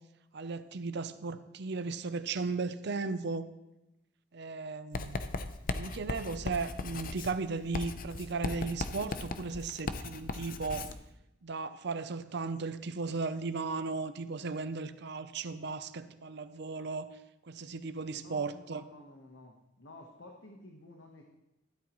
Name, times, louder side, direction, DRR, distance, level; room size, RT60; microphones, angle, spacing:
voice 1, 0.3-3.5 4.3-5.2 5.7-10.9 11.4-17.1 17.4-18.8, right 4 dB, 60° right, 12 dB, 0.6 m, -36 dB
Writing, 4.9-11.0, left 3 dB, 50° left, 0.6 m, -38 dB
voice 2, 18.1-21.2, left 2 dB, 75° left, 1 dB, 1.3 m, -52 dB
12.5 x 12.5 x 3.1 m, 0.92 s
head